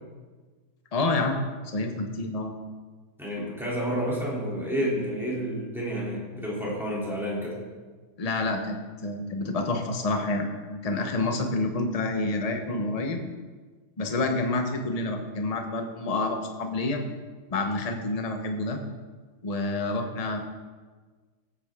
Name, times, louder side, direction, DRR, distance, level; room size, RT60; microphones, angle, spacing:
voice 1, 0.9-1.4 1.7-2.5 8.2-13.2 14.0-17.0 17.5-18.8 19.4-20.4, left 2 dB, 25° left, 4 dB, 0.9 m, -28 dB
voice 2, 3.2-7.6, equal, ahead, -6 dB, 3.2 m, -30 dB
16.0 x 8.9 x 3.7 m, 1.4 s
omnidirectional pair, 1.9 m